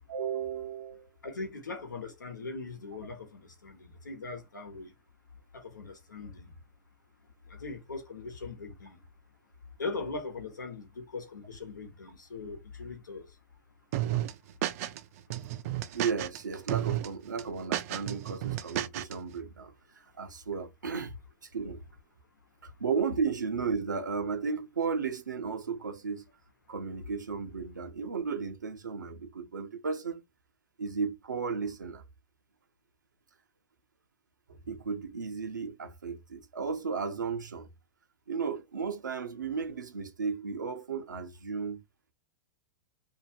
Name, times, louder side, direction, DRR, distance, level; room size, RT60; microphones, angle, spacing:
voice 1, 0.1-1.1 15.9-21.1 21.4-21.8 22.6-26.3 26.7-30.2 30.8-32.0 34.5-37.7 38.3-41.8, right 5 dB, 90° right, 0.7 m, -34 dB
voice 2, 1.2-4.9 5.5-6.5 7.4-9.0 9.8-13.4, left 3 dB, 90° left, 1.0 m, -40 dB
sound 1, 13.9-15.0 15.3-16.4 16.7-17.1 17.4-19.1, right 13 dB, 55° right, 0.4 m, -32 dB
2.7 x 2.2 x 2.8 m
hypercardioid pair, 105°, 10 cm